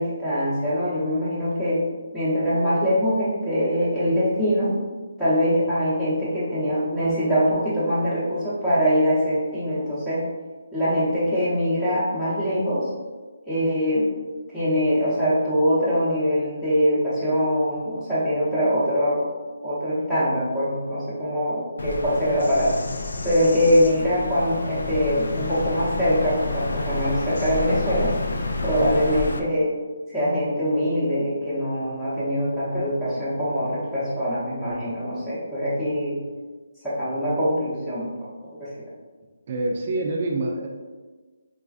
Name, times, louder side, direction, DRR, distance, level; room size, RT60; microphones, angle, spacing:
voice 1, 0.0-1.8 2.1-4.7 5.2-10.2 10.7-12.9 13.5-14.1 14.5-19.3 19.6-22.7 23.2-28.1 28.6-29.7 30.1-36.2 36.8-38.1 38.6-38.7, equal, 5° left, -13 dB, 0.7 m, -23 dB
Bird vocalization bird call bird song, 21.8-29.4, left 2 dB, 80° left, 0.3 m, -30 dB
voice 2, 39.5-40.7, right 2 dB, 40° right, 1 dB, 0.4 m, -26 dB
3.2 x 2.4 x 2.3 m, 1.3 s
hypercardioid pair, 165°, 0 cm